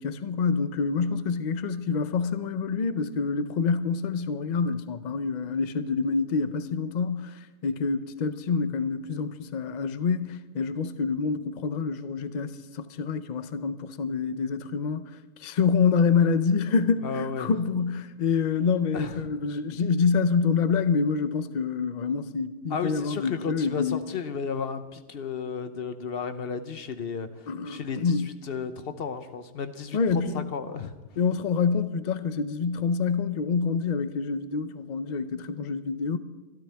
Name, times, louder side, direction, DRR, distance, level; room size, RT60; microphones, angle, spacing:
voice 1, 0.0-15.1 15.4-24.0 27.5-28.3 29.9-30.5 31.2-36.2, left 5 dB, 80° left, 0.4 m, -27 dB
voice 2, 17.0-17.5 18.9-19.2 22.7-30.9, left 6 dB, 45° left, 0.9 m, -33 dB
24.5 x 13.0 x 3.5 m
omnidirectional pair, 1.6 m